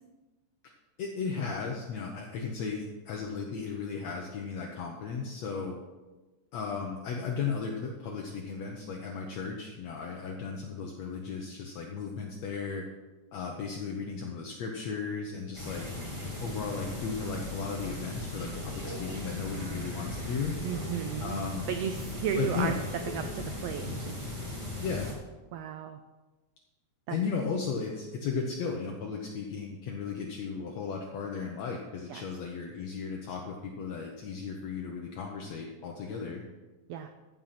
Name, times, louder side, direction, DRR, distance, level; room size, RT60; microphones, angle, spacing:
voice 1, 1.0-5.8 6.5-12.8 13.3-15.9 16.4-20.6 21.2-21.7 22.4-22.8 24.8-25.1 27.1-36.4, left 5 dB, 65° left, 0 dB, 2.0 m, -35 dB
sound 1, 15.5-25.1, left 1 dB, 10° right, 2.1 m, -38 dB
voice 2, 19.5-19.9 20.6-21.4 21.7-22.7 23.1-24.2 25.5-26.0 27.1-27.2 32.1-32.3 36.9-37.1, right 8 dB, 85° right, 8 dB, 1.4 m, -34 dB
15.0 x 5.9 x 5.8 m, 1.2 s
omnidirectional pair, 3.5 m